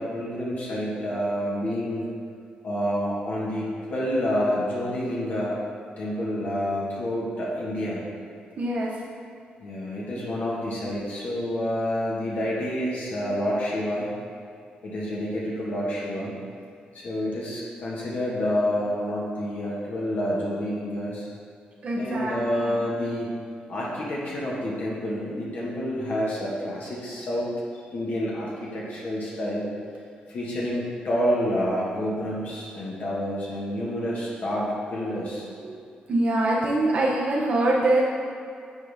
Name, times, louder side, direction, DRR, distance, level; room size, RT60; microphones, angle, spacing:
voice 1, 0.0-2.1 2.6-5.6 6.0-8.0 9.6-14.1 14.8-16.3 16.9-21.3 21.9-23.3 23.7-27.5 27.7-29.7 30.3-35.4, equal, 60° left, -6 dB, 1.4 m, -28 dB
voice 2, 8.6-8.9 21.8-22.8 35.6-35.8 36.1-38.0, right 2 dB, 55° right, -5 dB, 0.9 m, -24 dB
8.8 x 4.1 x 3.5 m, 2.3 s
cardioid pair, 90°, 3 cm